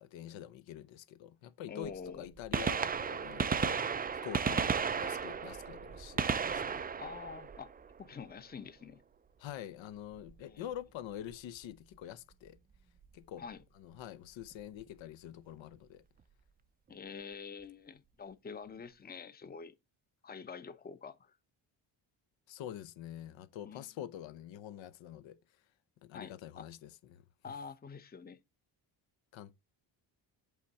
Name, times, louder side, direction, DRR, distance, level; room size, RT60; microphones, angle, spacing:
voice 1, 0.0-6.8 9.4-12.6 13.1-13.4 13.8-16.0 22.5-25.4 26.0-27.2 29.3-29.5, left 11 dB, 70° left, 0.9 m, -46 dB
voice 2, 1.7-2.3 4.5-4.6 7.0-7.7 8.0-9.0 10.5-10.6 13.4-13.6 16.9-19.7 20.2-21.3 23.6-23.9 26.1-26.7 27.4-28.4, left 5 dB, 20° left, 0.8 m, -46 dB
Gunshot gunfire, 1.8-1.9 2.4-8.2 10.2-10.3 11.3-11.4 13.0-13.1 14.5-14.6 14.8-14.9, right 6 dB, 20° right, 0.4 m, -34 dB
8.3 x 3.5 x 4.1 m
cardioid pair, 85°, 47 cm